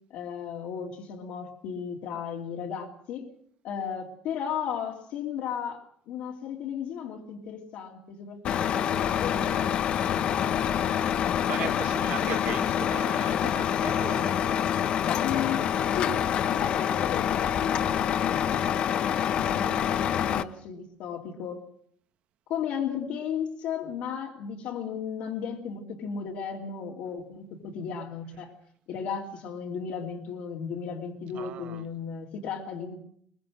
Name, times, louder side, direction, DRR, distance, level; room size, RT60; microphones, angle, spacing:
voice 1, 0.1-3.3 3.6-11.0 15.2-16.2 16.5-18.7 19.3-21.6 22.5-28.5 28.9-33.0, left 7 dB, 65° left, 2.6 m, -35 dB
Truck, 8.4-20.4, left 9 dB, 40° left, 0.8 m, -26 dB
voice 2, 11.5-14.7 15.0-15.9 31.3-31.9, right 10 dB, 50° right, 1.2 m, -39 dB
22.5 x 22.0 x 6.3 m
cardioid pair, 180°, 3 cm